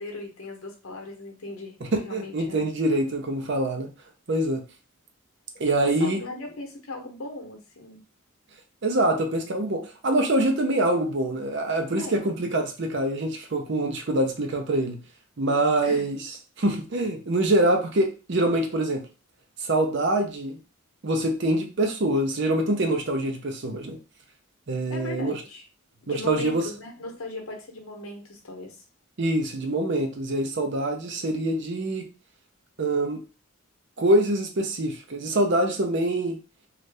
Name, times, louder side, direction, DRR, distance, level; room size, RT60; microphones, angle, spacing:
voice 1, 0.0-1.8 2.0-2.7 5.8-8.0 12.0-12.2 15.8-16.2 24.9-25.6 26.0-28.8, left 2 dB, 75° left, 2 dB, 0.8 m, -38 dB
voice 2, 1.8-3.9 4.3-4.6 5.6-6.2 8.8-15.0 15.4-16.2 16.6-19.0 19.6-20.6 21.0-24.0 24.7-25.4 26.1-26.6 29.2-32.0 32.8-33.2 34.0-36.4, right 1 dB, 55° right, 4 dB, 0.6 m, -25 dB
2.6 x 2.4 x 3.2 m, 0.33 s
head